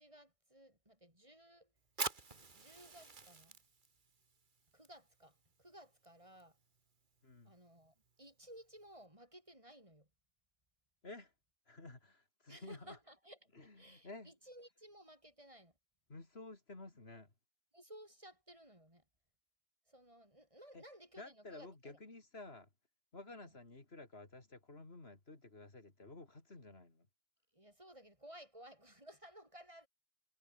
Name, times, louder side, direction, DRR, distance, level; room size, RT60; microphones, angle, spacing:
voice 1, 0.0-1.7 2.5-3.6 4.7-6.6 7.4-10.1 12.5-13.5 13.8-15.7 17.7-19.0 19.9-22.0 23.3-23.5 27.5-29.9, right 1 dB, 30° right, 6.8 m, -58 dB
Fire, 1.8-9.1, right 4 dB, 50° right, 1.8 m, -49 dB
voice 2, 7.2-7.5 11.0-11.3 11.7-13.0 13.5-14.3 16.1-17.3 20.7-20.8 21.2-22.7 23.1-27.1, left 2 dB, 80° left, 3.8 m, -53 dB
omnidirectional pair, 1.0 m